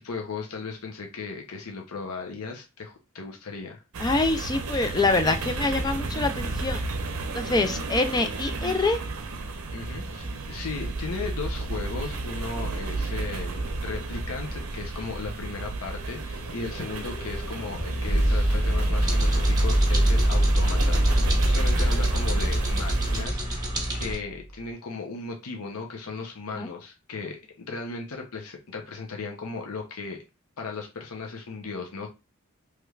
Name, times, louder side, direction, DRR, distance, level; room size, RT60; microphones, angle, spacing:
voice 1, 0.0-3.8 9.7-30.2 30.6-32.1, left 4 dB, 85° left, 0.7 m, -36 dB
sound 1, 3.9-23.2, right 2 dB, 70° right, 0.6 m, -32 dB
voice 2, 4.0-6.8 7.3-9.0 26.6-26.7, left 3 dB, 20° left, 0.3 m, -25 dB
sound 2, 16.0-24.0, right 1 dB, 50° left, 1.4 m, -24 dB
sound 3, 19.0-24.2, right 1 dB, 20° right, 0.9 m, -31 dB
3.2 x 3.2 x 2.3 m
head